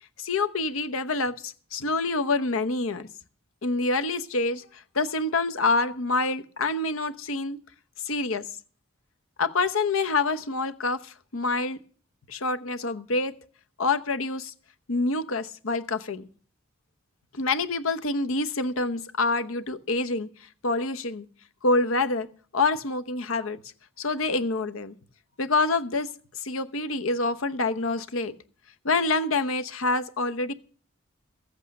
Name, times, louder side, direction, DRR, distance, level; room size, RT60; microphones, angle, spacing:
voice 1, 0.2-3.1 3.6-7.6 8.0-8.4 9.4-11.8 12.3-13.3 13.8-14.5 14.9-16.3 17.3-20.3 20.6-21.3 21.6-22.3 22.5-23.6 24.0-24.9 25.4-26.1 26.4-28.3 28.8-30.5, left 3 dB, 85° left, 0.9 m, -26 dB
14.5 x 8.1 x 6.6 m
head